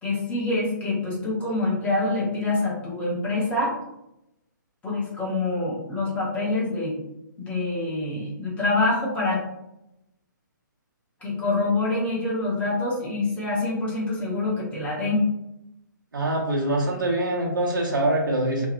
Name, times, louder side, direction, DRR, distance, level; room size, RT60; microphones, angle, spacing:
voice 1, 0.0-3.7 4.8-7.0 7.4-9.4 11.2-15.2, left 2 dB, 10° left, -5 dB, 0.8 m, -26 dB
voice 2, 16.1-18.7, right 1 dB, 85° right, -2 dB, 0.6 m, -24 dB
2.7 x 2.1 x 2.4 m, 0.86 s
hypercardioid pair, 140°, 11 cm